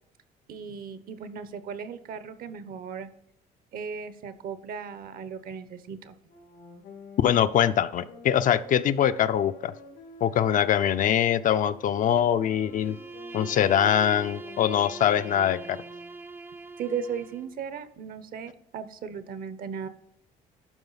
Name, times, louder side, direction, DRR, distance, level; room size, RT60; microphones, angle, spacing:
voice 1, 0.5-3.1 3.7-6.2 16.8-19.9, right 6 dB, 60° right, 14 dB, 0.9 m, -36 dB
sound 1, 6.2-16.3, left 3 dB, 85° left, 2.6 m, -49 dB
voice 2, 7.2-9.7 10.2-13.0 13.3-15.8, left 10 dB, 50° left, 11 dB, 0.5 m, -23 dB
Bowed string instrument, 12.6-17.6, right 3 dB, 10° right, 0.5 m, -42 dB
12.0 x 5.0 x 4.0 m, 0.76 s
cardioid pair, 110°, 17 cm